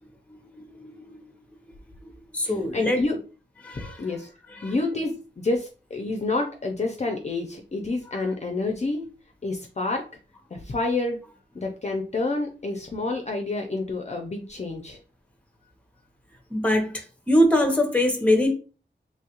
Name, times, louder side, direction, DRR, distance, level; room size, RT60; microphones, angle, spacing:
voice 1, 0.3-1.2 2.3-3.0 3.6-4.0 4.5-4.7 16.5-18.5, left 1 dB, 5° left, 0.7 m, -23 dB
voice 2, 2.4-3.2 3.7-4.3 4.6-9.0 9.4-10.0 10.5-11.2 11.5-15.0, left 2 dB, 35° left, 0.5 m, -28 dB
3.1 x 2.3 x 2.9 m
wide cardioid pair, 95°, 19 cm